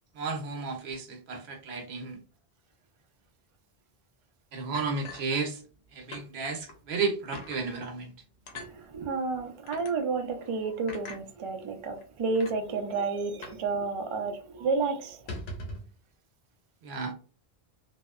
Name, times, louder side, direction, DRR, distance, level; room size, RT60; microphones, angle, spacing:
voice 1, 0.1-2.2 4.5-5.6 5.9-8.1 16.8-17.1, right 4 dB, 80° right, 0.9 m, -33 dB
sound 1, 4.7-5.8 6.1-6.3 6.7-6.8 7.3-7.6 8.5-8.7 9.7-9.9 10.9-11.2 12.0-12.1 12.3-12.6 13.4-13.7 13.9-14.0 14.4-14.6 15.1-15.9, left 2 dB, 90° left, 0.9 m, -41 dB
voice 2, 8.5-15.3, right 4 dB, 50° right, 0.3 m, -31 dB
2.7 x 2.1 x 2.3 m
omnidirectional pair, 1.0 m